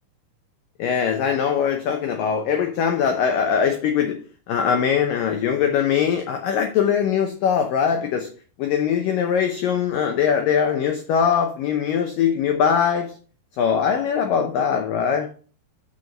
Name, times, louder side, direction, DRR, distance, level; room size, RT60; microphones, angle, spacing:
voice 1, 0.8-4.2 4.5-8.3 8.6-13.2 13.6-15.3, left 7 dB, 90° left, 1.9 m, -21 dB
6.8 x 6.3 x 6.4 m
omnidirectional pair, 5.2 m